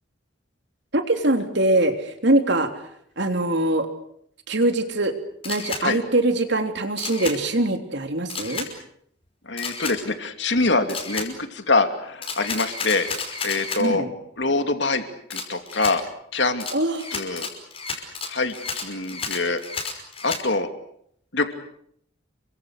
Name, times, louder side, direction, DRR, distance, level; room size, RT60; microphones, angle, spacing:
voice 1, 0.9-2.7 3.2-3.9 4.5-5.1 5.4-8.7 13.8-14.1 16.7-17.0, right 1 dB, 60° right, 6 dB, 3.3 m, -22 dB
Camera, 5.4-5.8 7.0-7.4 8.3-8.7 9.6-10.0 10.9-11.3 12.2-13.8 15.3-16.0 16.6-20.4, left 4 dB, 30° left, 5.4 m, -31 dB
voice 2, 9.5-13.1 13.4-14.1 14.4-15.0 15.3-16.0 16.3-16.7 17.1-17.5 17.9-19.6 20.2-20.7 21.3-21.5, left 3 dB, 60° left, 7 dB, 2.8 m, -24 dB
30.0 x 24.0 x 6.7 m, 0.69 s
head